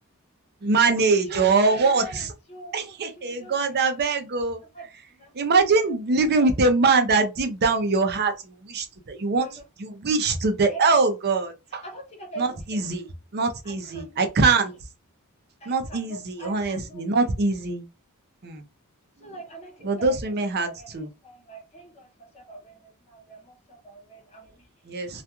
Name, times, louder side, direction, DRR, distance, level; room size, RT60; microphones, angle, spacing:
voice 1, 0.6-2.3 2.7-4.6 5.3-9.5 9.8-11.8 12.4-13.1 13.3-14.7 15.7-17.9 18.4-18.6 19.8-21.1 24.8-25.2, right 3 dB, 45° right, 0.5 m, -23 dB
voice 2, 1.3-4.1 4.7-5.3 5.7-5.9 6.4-6.5 9.3-9.6 10.7-10.9 11.8-13.0 13.6-14.3 15.6-17.0 19.2-20.1 20.6-25.0, right 2 dB, 30° left, 0.8 m, -43 dB
2.3 x 2.2 x 2.8 m
head